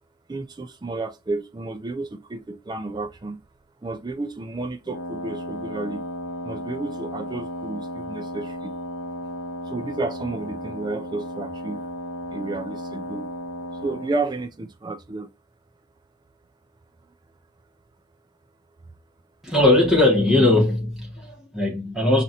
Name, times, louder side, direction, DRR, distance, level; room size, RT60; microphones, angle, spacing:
voice 1, 0.3-3.4 3.8-6.0 6.4-8.7 9.7-11.8 12.3-13.3 13.7-15.3, right 3 dB, 20° right, 0.3 m, -31 dB
Wind instrument woodwind instrument, 4.9-14.2, equal, 75° left, 0.5 m, -34 dB
voice 2, 19.4-22.2, left 2 dB, ahead, 1.2 m, -19 dB
5.1 x 2.5 x 2.8 m
head